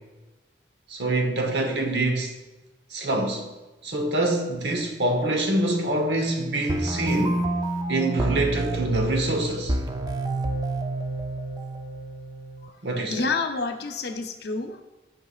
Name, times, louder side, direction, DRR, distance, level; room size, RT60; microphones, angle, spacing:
voice 1, 0.9-2.3 2.9-3.5 3.8-7.4 7.9-9.8 12.8-13.2, right 1 dB, 70° right, 0.9 m, -25 dB
sound 1, 6.7-12.7, right 2 dB, 25° right, 0.5 m, -29 dB
voice 2, 12.6-14.8, left 4 dB, 65° left, 0.6 m, -29 dB
11.5 x 5.2 x 2.4 m
head